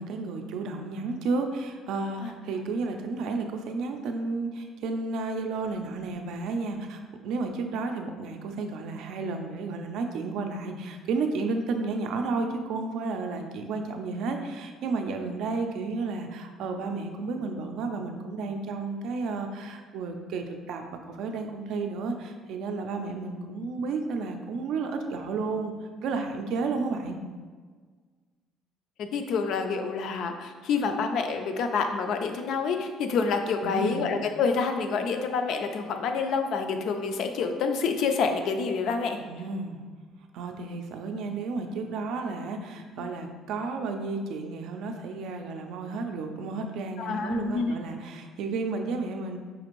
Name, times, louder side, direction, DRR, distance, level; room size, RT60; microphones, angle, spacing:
voice 1, 0.0-25.7 26.0-27.2 33.6-34.1 39.2-39.8 40.3-49.4, right 3 dB, 65° right, 5 dB, 0.4 m, -32 dB
voice 2, 29.0-39.2 43.0-43.1 47.0-47.7, left 5 dB, 60° left, 6 dB, 0.3 m, -28 dB
4.9 x 2.5 x 3.0 m, 1.5 s
cardioid pair, 155°, 0 cm